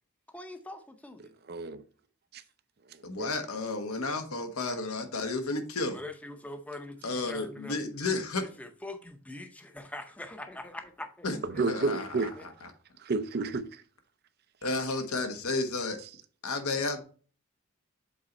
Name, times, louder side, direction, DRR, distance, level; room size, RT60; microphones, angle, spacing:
voice 1, 0.3-1.3 5.9-7.8 8.4-11.3 11.7-12.5, left 1 dB, 5° left, 0.7 m, -43 dB
voice 2, 1.5-1.8 2.3-2.4 2.9-3.3 11.4-12.3 13.0-13.8, right 3 dB, 45° right, 0.5 m, -31 dB
voice 3, 3.0-6.0 7.0-8.5 11.2-12.7 14.6-16.0 16.4-17.0, left 3 dB, 85° left, 1.3 m, -32 dB
7.6 x 3.9 x 4.2 m
head